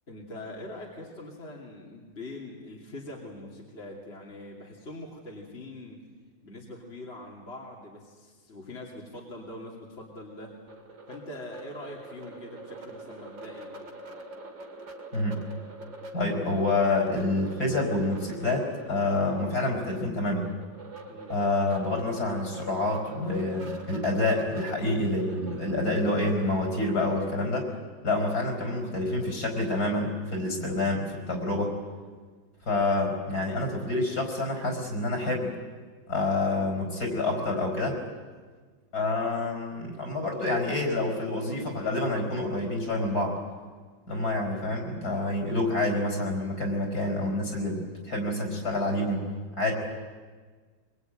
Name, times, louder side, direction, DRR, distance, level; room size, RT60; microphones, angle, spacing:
voice 1, 0.1-6.1 6.4-10.6 11.1-13.7 21.1-21.5, left 1 dB, 35° left, -3 dB, 3.1 m, -43 dB
sound 1, 10.7-27.4, right 2 dB, 75° right, 3.3 m, -44 dB
voice 2, 16.1-20.5 21.3-27.7 28.0-31.7 32.7-35.5 36.1-38.0 38.9-43.3 44.1-49.2 49.6-49.7, left 2 dB, 55° left, 2 dB, 5.3 m, -27 dB
23.5 x 23.0 x 9.2 m, 1.5 s
omnidirectional pair, 2.0 m